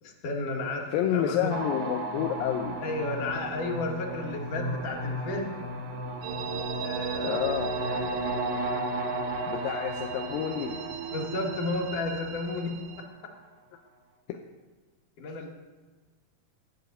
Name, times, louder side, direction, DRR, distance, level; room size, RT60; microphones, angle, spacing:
voice 1, 0.0-1.6 2.8-5.5 6.8-7.5 7.9-8.2 11.1-13.3 15.2-15.5, left 2 dB, 65° left, 0 dB, 3.0 m, -33 dB
voice 2, 0.9-2.8 7.2-7.8 9.5-10.8, left 10 dB, 85° left, 4 dB, 2.5 m, -29 dB
sound 1, 1.5-12.6, right 2 dB, 60° right, 0.9 m, -34 dB
sound 2, 6.2-13.1, right 10 dB, 90° right, 2.3 m, -40 dB
13.5 x 6.4 x 9.1 m, 1.3 s
omnidirectional pair, 4.0 m